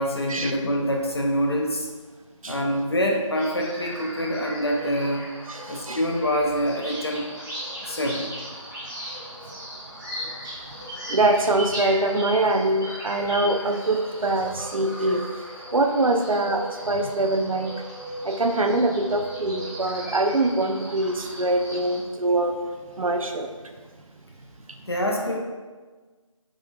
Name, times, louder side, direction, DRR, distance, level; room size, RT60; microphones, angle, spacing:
voice 1, 0.0-1.9 2.5-5.3 5.7-7.3 7.8-8.3 24.9-25.4, equal, 50° left, 1 dB, 0.5 m, -25 dB
sound 1, 3.3-22.0, equal, 35° right, 1.1 m, -37 dB
voice 2, 5.5-6.0 11.1-15.2 15.7-17.7 18.2-22.6 23.0-23.5, right 2 dB, 85° right, 5 dB, 0.5 m, -23 dB
3.7 x 3.1 x 2.5 m, 1.4 s
figure-of-eight pair, 165°, 17 cm